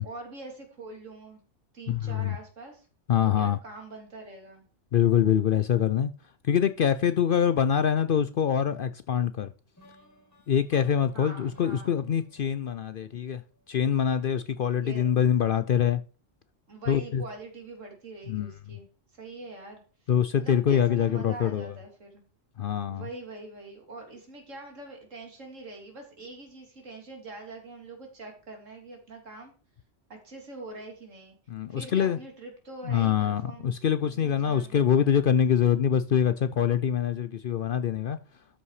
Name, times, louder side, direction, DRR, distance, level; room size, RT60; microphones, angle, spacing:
voice 1, 0.0-1.4 1.7-2.9 3.4-4.6 11.1-11.9 14.8-15.1 16.7-18.9 19.1-19.8 20.4-22.2 22.9-29.5 30.1-31.3 31.7-33.7 34.1-35.1, right 2 dB, 80° right, 3.0 m, -44 dB
voice 2, 1.9-2.4 3.1-3.6 4.9-6.1 6.4-9.5 10.5-13.4 13.7-16.0 16.9-17.2 18.3-18.5 20.1-21.7 22.6-23.1 31.5-32.2 32.8-38.2, left 8 dB, 60° left, 0.6 m, -24 dB
sound 1, 9.8-13.7, left 2 dB, 15° left, 2.8 m, -57 dB
12.5 x 5.5 x 4.8 m
omnidirectional pair, 1.3 m